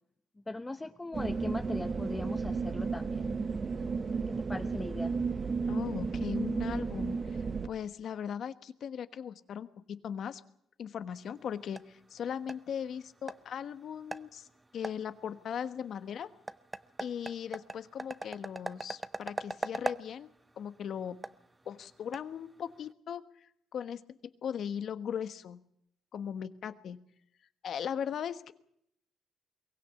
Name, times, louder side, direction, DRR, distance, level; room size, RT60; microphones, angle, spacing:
voice 1, 0.5-3.3 4.3-5.1, left 2 dB, 15° left, 8 dB, 0.8 m, -39 dB
sound 1, 1.1-7.7, right 4 dB, 35° right, 1.0 m, -33 dB
voice 2, 5.7-10.4 10.8-14.5 14.7-16.3 17.0-20.3 20.6-21.2 21.6-25.6 26.1-27.0 27.6-28.5, left 8 dB, 65° left, 12 dB, 1.2 m, -38 dB
Cartoon Mouse Walk, 11.1-22.9, right 2 dB, 15° right, 0.8 m, -43 dB
23.0 x 16.5 x 8.3 m, 0.72 s
cardioid pair, 90°, 0 cm